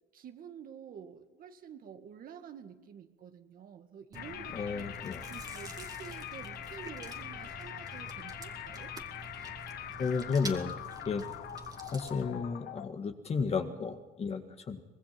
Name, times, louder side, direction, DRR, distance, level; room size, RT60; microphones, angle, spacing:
voice 1, 0.1-4.8 5.3-8.9, right 8 dB, 60° right, 7 dB, 1.9 m, -49 dB
sound 1, 4.1-12.9, left 11 dB, 70° left, 1.1 m, -43 dB
Chewing mastication, 4.1-12.3, right 3 dB, 20° right, 2.1 m, -48 dB
voice 2, 4.5-5.2 10.0-10.8 11.1-11.2 11.9-14.8, left 5 dB, 40° left, 7 dB, 1.9 m, -33 dB
24.5 x 20.0 x 6.1 m, 1.1 s
cardioid pair, 110°, 17 cm